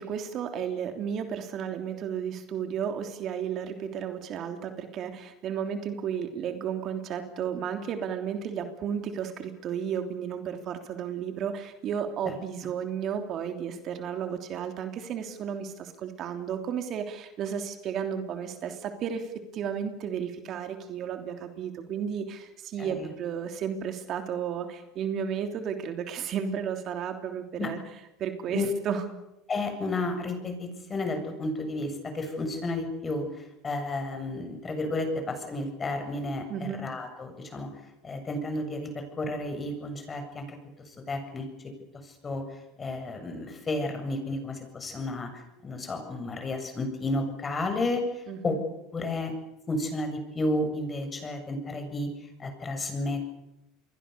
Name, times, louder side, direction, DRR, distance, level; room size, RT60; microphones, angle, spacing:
voice 1, 0.0-27.8 28.2-29.1 36.5-36.8 48.3-48.6, right 8 dB, 45° right, 6 dB, 3.2 m, -33 dB
voice 2, 22.8-23.1 27.6-27.7 28.5-28.7 29.5-37.7 38.0-40.6 40.9-41.7 42.0-48.6 48.9-49.3 49.7-52.1 52.4-53.3, left 2 dB, 25° left, 6 dB, 7.5 m, -32 dB
29.0 x 22.5 x 7.0 m, 0.88 s
supercardioid pair, 110°, 0 cm